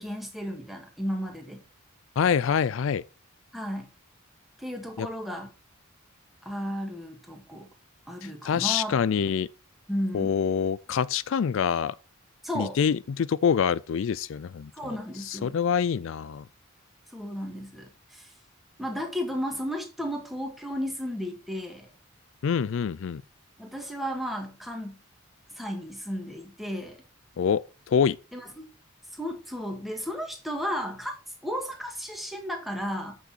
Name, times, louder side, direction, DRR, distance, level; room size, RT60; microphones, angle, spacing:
voice 1, 0.0-1.6 3.5-3.9 4.6-5.5 6.4-7.7 8.1-9.3 9.9-10.4 12.4-12.8 14.7-15.6 17.1-18.3 18.8-21.9 23.6-25.0 25.5-27.0 28.3-28.7 29.1-31.2 31.4-33.2, equal, ahead, 1.9 m, -34 dB
voice 2, 2.2-3.0 5.0-5.1 8.2-9.5 10.1-12.0 12.5-14.7 15.2-16.4 22.4-23.2 27.4-28.2, left 7 dB, 65° left, 0.3 m, -26 dB
8.2 x 6.4 x 4.4 m
head